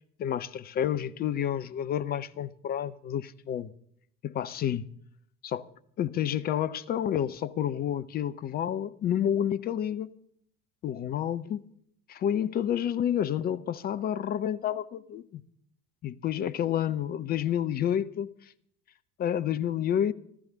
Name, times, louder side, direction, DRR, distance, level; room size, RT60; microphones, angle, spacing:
voice 1, 0.2-3.7 4.2-4.9 5.4-5.7 6.0-10.2 10.8-11.6 12.1-15.4 16.0-18.3 19.2-20.1, left 10 dB, 20° left, 0.5 m, -29 dB
14.5 x 14.0 x 5.8 m
figure-of-eight pair, 70°, 47 cm